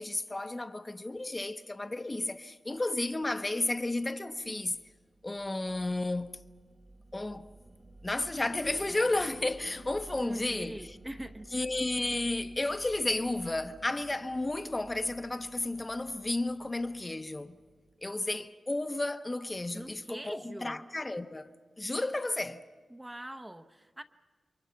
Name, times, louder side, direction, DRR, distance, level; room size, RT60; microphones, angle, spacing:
voice 1, 0.0-4.8 5.2-6.4 7.1-7.5 8.0-10.8 11.5-17.6 18.0-21.5 21.8-22.6, left 2 dB, 25° left, 0.9 m, -32 dB
sound 1, 3.8-18.3, right 2 dB, 35° right, 1.9 m, -54 dB
voice 2, 10.2-11.5 19.7-20.9 22.9-24.0, right 1 dB, 15° right, 0.9 m, -43 dB
28.5 x 23.5 x 5.8 m
cardioid pair, 75°, 0 cm